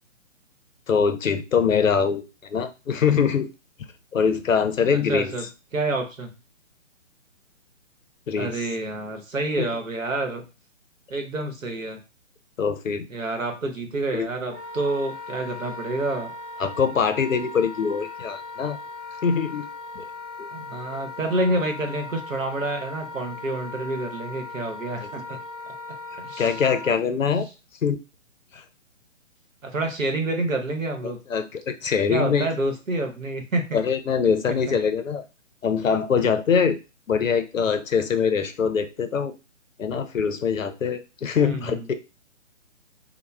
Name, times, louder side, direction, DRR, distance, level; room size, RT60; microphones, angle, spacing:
voice 1, 0.9-3.5 4.1-5.3 8.3-8.6 9.6-9.7 12.6-13.1 14.1-14.3 16.6-18.8 19.2-19.7 20.0-20.1 20.4-20.5 25.3-25.4 26.4-27.5 27.8-28.0 28.5-28.6 31.0-32.5 33.7-35.2 35.6-36.8 37.1-39.3 39.8-41.9, left 6 dB, 85° left, 9 dB, 0.5 m, -23 dB
voice 2, 5.1-5.5 5.7-6.3 8.4-10.4 11.1-12.0 13.1-16.3 20.5-25.4 26.2-26.6 29.6-31.2 32.1-33.8 34.5-34.6 41.4-41.9, right 2 dB, 85° right, 4 dB, 0.9 m, -28 dB
Wind instrument woodwind instrument, 14.5-27.0, left 3 dB, 25° left, 0.7 m, -38 dB
2.3 x 2.1 x 3.1 m, 0.29 s
figure-of-eight pair, 135°, 39 cm